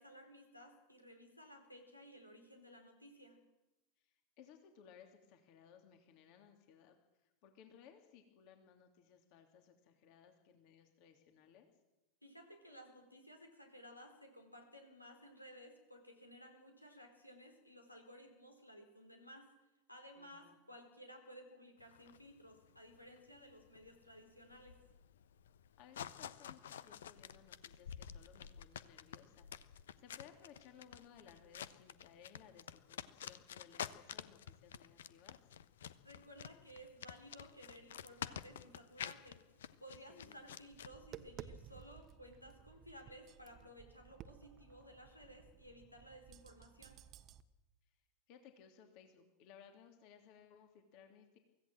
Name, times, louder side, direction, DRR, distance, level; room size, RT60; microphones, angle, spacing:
voice 1, 0.0-3.4 12.2-19.5 19.9-24.8 36.0-39.4 39.8-47.0, equal, 90° left, 4 dB, 4.1 m, -57 dB
voice 2, 4.0-6.9 7.2-11.7 20.1-20.6 25.8-29.5 30.0-35.4 40.1-40.4 48.3-51.4, left 8 dB, 45° left, 5 dB, 3.0 m, -61 dB
sound 1, 21.8-40.9, left 9 dB, 65° left, 1.0 m, -50 dB
Tap, 40.7-47.4, right 9 dB, 35° right, 1.2 m, -56 dB
24.5 x 16.5 x 7.7 m, 0.98 s
figure-of-eight pair, 85°, 0 cm